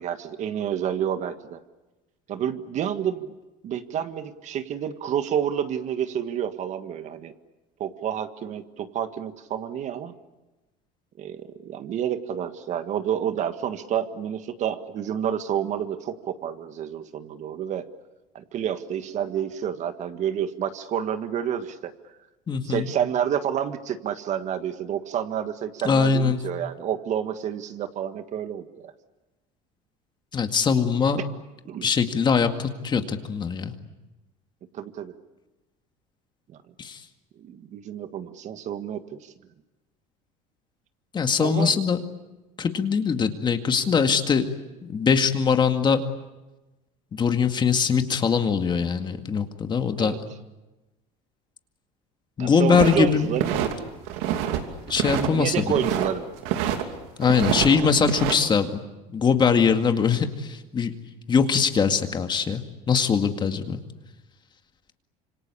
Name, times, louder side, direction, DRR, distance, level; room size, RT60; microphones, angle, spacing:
voice 1, 0.0-1.6 2.3-3.4 3.6-7.3 7.8-10.1 11.2-17.8 18.3-21.9 22.6-28.9 31.7-31.9 34.7-35.1 37.4-39.3 41.4-41.8 50.0-50.2 52.4-53.6 55.1-56.2, right 9 dB, 45° right, 9 dB, 1.6 m, -29 dB
voice 2, 22.5-22.9 25.8-26.4 30.3-31.2 31.8-33.7 36.8-37.0 41.1-42.0 42.6-44.4 44.8-46.0 47.1-50.2 52.4-53.3 54.9-55.8 57.2-58.8 59.1-60.9 61.3-63.8, left 6 dB, 30° left, 7 dB, 2.1 m, -22 dB
sound 1, 52.7-53.7 54.1-54.6 54.9-56.1 56.4-56.8 57.2-58.3, right 10 dB, 85° right, 3.0 m, -26 dB
27.0 x 25.0 x 8.4 m, 1.1 s
cardioid pair, 135°, 16 cm